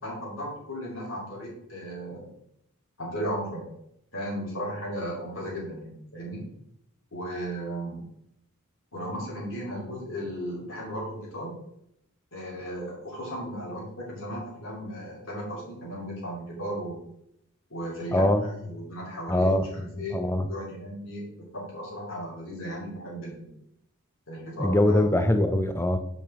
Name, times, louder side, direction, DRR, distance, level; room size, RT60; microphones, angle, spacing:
voice 1, 0.0-2.3 3.0-3.7 4.1-6.5 7.1-8.0 8.9-11.5 12.3-17.0 17.7-20.2 20.5-23.5 24.3-25.0, equal, 70° left, -5 dB, 2.7 m, -35 dB
voice 2, 18.1-18.5 19.3-20.5 24.6-26.0, left 1 dB, 10° left, 8 dB, 0.5 m, -23 dB
7.4 x 5.2 x 3.6 m, 0.77 s
head